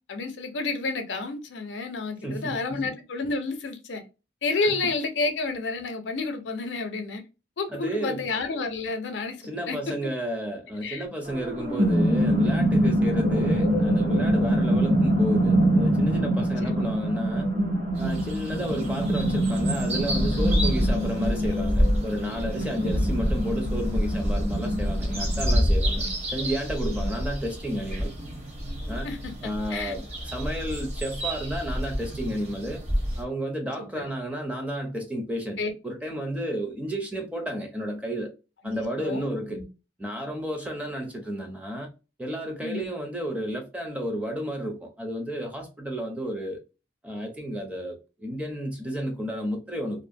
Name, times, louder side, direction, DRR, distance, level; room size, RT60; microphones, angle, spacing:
voice 1, 0.1-4.0 4.4-7.2 7.6-9.4 9.7-9.9 10.8-11.0 16.4-16.9 22.6-23.0 26.0-26.2 26.9-27.1 29.0-29.9 33.8-34.0 35.6-35.7 38.6-39.6 42.6-42.9, left 3 dB, 85° left, 0.6 m, -31 dB
voice 2, 2.2-2.9 4.6-4.8 7.7-8.3 9.4-17.5 18.0-28.1 28.9-29.1 29.4-32.8 33.2-38.3 38.6-39.6 40.0-41.9 42.2-46.6 47.0-50.1, equal, 5° right, 0.5 m, -32 dB
sound 1, 11.3-25.6, equal, 80° right, 1.0 m, -25 dB
sound 2, 17.9-33.2, equal, 35° right, 0.8 m, -28 dB
2.5 x 2.1 x 2.5 m
head